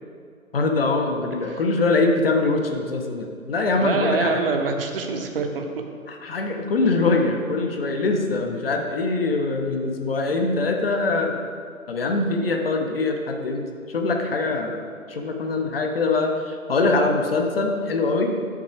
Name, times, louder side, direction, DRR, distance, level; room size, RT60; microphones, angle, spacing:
voice 1, 0.5-4.4 6.1-11.4 11.9-14.8 15.1-18.4, left 3 dB, 40° left, 3 dB, 0.8 m, -23 dB
voice 2, 3.8-5.6, right 4 dB, 40° right, 4 dB, 0.7 m, -25 dB
6.1 x 5.8 x 4.3 m, 2.1 s
figure-of-eight pair, 145°, 43 cm